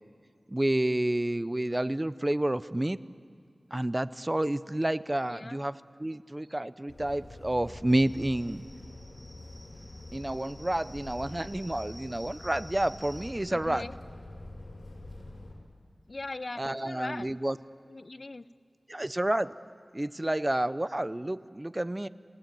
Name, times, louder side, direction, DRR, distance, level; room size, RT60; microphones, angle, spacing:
voice 1, 0.5-3.0 3.7-8.6 10.1-13.9 16.6-17.6 18.9-19.5 19.9-22.1, right 1 dB, 20° right, 15 dB, 0.5 m, -29 dB
voice 2, 5.3-5.6 13.5-14.0 16.1-17.3 17.9-18.5, left 2 dB, 50° left, 15 dB, 0.5 m, -40 dB
sound 1, 6.9-15.6, left 1 dB, 80° left, 5.7 m, -46 dB
sound 2, 7.9-13.3, equal, 5° left, 2.1 m, -51 dB
29.0 x 17.0 x 9.2 m, 2.2 s
wide cardioid pair, 80°, 0 cm